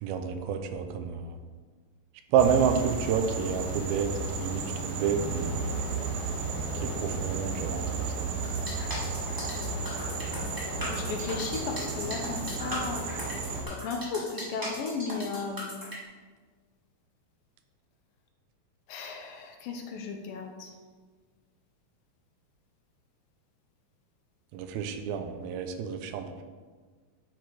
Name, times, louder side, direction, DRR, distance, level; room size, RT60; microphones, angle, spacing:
voice 1, 0.0-1.3 2.3-5.8 6.8-8.3 24.5-26.4, right 7 dB, 85° right, 7 dB, 2.6 m, -29 dB
sound 1, 2.4-13.6, right 3 dB, 70° right, 2.8 m, -33 dB
sound 2, 8.4-16.0, equal, 25° right, 0.4 m, -38 dB
voice 2, 10.8-13.0 13.8-15.8 18.9-20.7, left 5 dB, 80° left, 3 dB, 2.5 m, -35 dB
11.0 x 4.8 x 4.7 m, 1.5 s
omnidirectional pair, 4.2 m